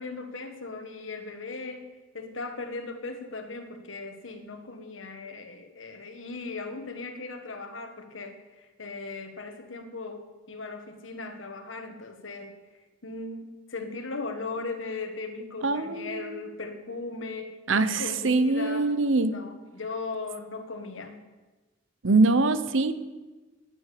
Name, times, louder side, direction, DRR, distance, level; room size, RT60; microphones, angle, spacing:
voice 1, 0.0-12.6 13.0-18.9 19.3-21.3, left 3 dB, 80° left, 7 dB, 1.5 m, -38 dB
voice 2, 15.6-16.4 17.7-19.3 22.0-23.0, right 3 dB, 75° right, 13 dB, 0.9 m, -23 dB
10.5 x 10.0 x 8.6 m, 1.2 s
head